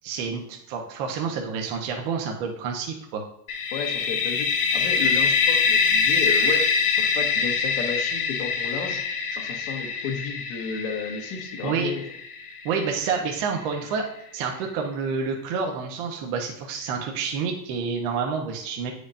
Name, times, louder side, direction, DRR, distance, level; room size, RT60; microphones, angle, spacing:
voice 1, 0.0-3.2 11.6-11.9 12.6-14.0 14.3-18.9, right 5 dB, 60° right, 1 dB, 1.1 m, -28 dB
sound 1, 3.5-13.2, left 5 dB, 60° left, 1.5 m, -24 dB
voice 2, 3.7-12.0, left 5 dB, 85° left, 2 dB, 1.5 m, -33 dB
8.5 x 5.0 x 2.6 m, 0.77 s
supercardioid pair, 135°, 45 cm